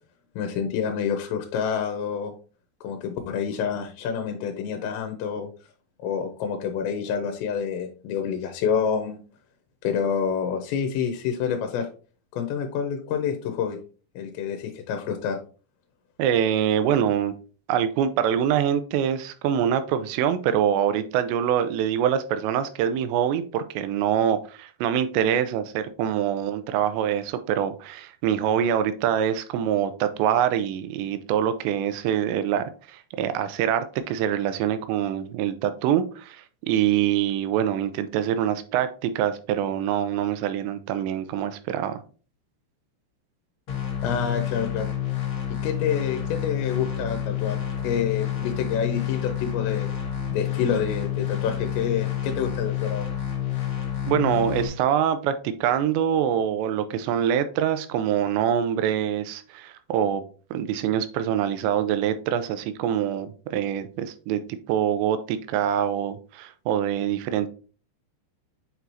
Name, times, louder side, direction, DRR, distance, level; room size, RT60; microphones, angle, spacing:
voice 1, 0.4-2.3 2.8-5.5 6.0-9.2 9.8-11.9 12.3-13.8 14.2-15.4 44.0-44.9 45.6-49.9 50.3-53.1, left 7 dB, 90° left, 5 dB, 2.9 m, -28 dB
voice 2, 16.2-17.3 17.7-42.0 54.1-60.2 60.5-64.4 64.7-67.5, right 9 dB, 85° right, 11 dB, 2.8 m, -25 dB
sound 1, 43.7-54.7, left 10 dB, 55° left, 1.4 m, -29 dB
8.2 x 4.5 x 2.7 m, 0.37 s
omnidirectional pair, 5.1 m